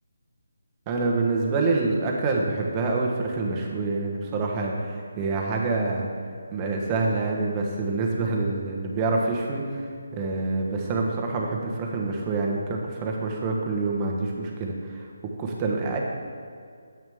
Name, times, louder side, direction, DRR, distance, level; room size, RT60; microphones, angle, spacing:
voice 1, 0.9-6.1 6.5-9.8 10.1-15.0 15.4-16.0, right 3 dB, 20° right, -1 dB, 1.1 m, -26 dB
9.5 x 9.1 x 3.6 m, 2.3 s
hypercardioid pair, 165°, 0 cm